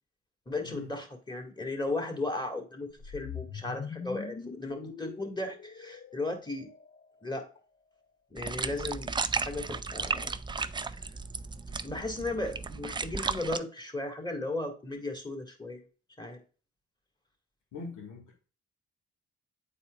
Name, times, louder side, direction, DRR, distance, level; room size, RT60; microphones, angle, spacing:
voice 1, 0.5-6.7 7.2-7.5 8.3-10.3 10.9-11.1 11.8-15.8 16.2-16.4, left 2 dB, 15° left, 4 dB, 2.0 m, -36 dB
sound 1, 3.0-7.2, left 6 dB, 30° left, 0.6 m, -43 dB
sound 2, 8.4-13.6, right 4 dB, 15° right, 0.3 m, -34 dB
voice 2, 17.7-18.5, left 4 dB, 80° left, 0 dB, 1.9 m, -44 dB
9.3 x 4.2 x 2.5 m, 0.36 s
supercardioid pair, 60°, 30 cm